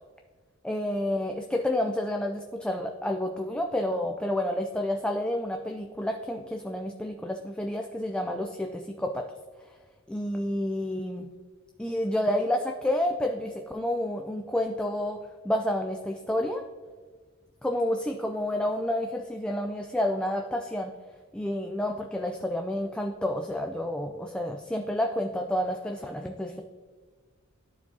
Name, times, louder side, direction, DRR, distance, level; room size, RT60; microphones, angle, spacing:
voice 1, 0.6-9.3 10.1-11.3 11.8-15.2 15.4-16.6 17.6-20.9 21.3-26.6, left 1 dB, 5° left, 2 dB, 0.4 m, -29 dB
13.0 x 4.5 x 2.7 m, 1.5 s
head